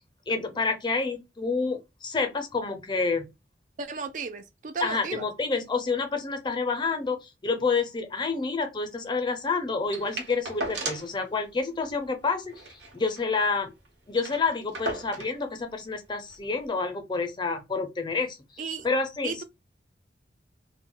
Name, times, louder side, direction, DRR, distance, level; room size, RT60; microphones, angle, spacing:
voice 1, 0.3-3.3 4.8-12.5 12.9-13.7 14.1-18.4 18.8-19.4, left 4 dB, 25° left, 0.5 m, -28 dB
voice 2, 3.8-5.3 18.6-18.9 19.2-19.4, right 5 dB, 45° right, 0.3 m, -34 dB
sound 1, 9.9-11.2 11.5-11.6 11.9-12.1 12.5-13.6 13.9-14.0 14.1-15.4 16.3-16.4, right 2 dB, 85° right, 0.8 m, -36 dB
2.1 x 2.1 x 3.7 m
head